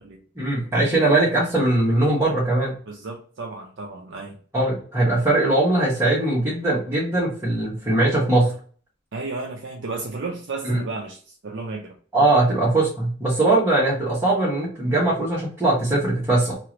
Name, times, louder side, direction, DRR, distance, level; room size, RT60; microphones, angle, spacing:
voice 1, 0.3-2.7 4.5-8.5 10.6-10.8 12.1-16.5, right 2 dB, 15° right, -10 dB, 1.2 m, -20 dB
voice 2, 2.9-4.4 9.1-11.9, right 3 dB, 65° right, 1 dB, 0.5 m, -33 dB
2.9 x 2.5 x 2.9 m, 0.43 s
head